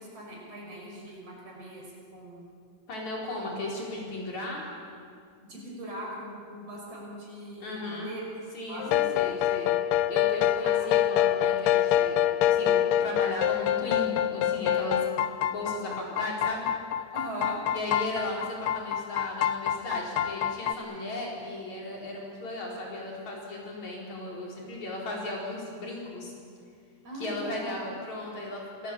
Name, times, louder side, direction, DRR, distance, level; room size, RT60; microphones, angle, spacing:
voice 1, 0.0-1.8 2.1-2.4 3.4-3.5 5.4-8.2 8.7-9.0 10.6-10.9 17.1-17.6 27.0-27.9, right 1 dB, 50° right, -3 dB, 7.0 m, -40 dB
voice 2, 2.9-4.7 7.6-8.1 8.5-9.8 10.1-16.7 17.7-26.3 27.1-28.9, left 1 dB, 60° left, -2 dB, 5.9 m, -36 dB
sound 1, 8.8-20.7, left 11 dB, 85° left, 2.5 m, -26 dB
27.0 x 18.5 x 8.7 m, 2.2 s
omnidirectional pair, 3.7 m